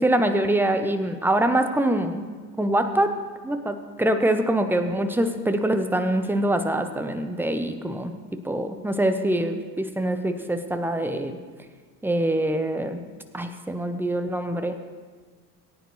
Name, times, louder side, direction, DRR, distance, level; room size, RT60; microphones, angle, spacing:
voice 1, 0.0-2.2 2.6-3.1 3.4-11.4 12.0-13.0 13.3-14.8, right 1 dB, 5° right, 8 dB, 0.8 m, -24 dB
18.5 x 9.4 x 3.2 m, 1.5 s
figure-of-eight pair, 70°, 47 cm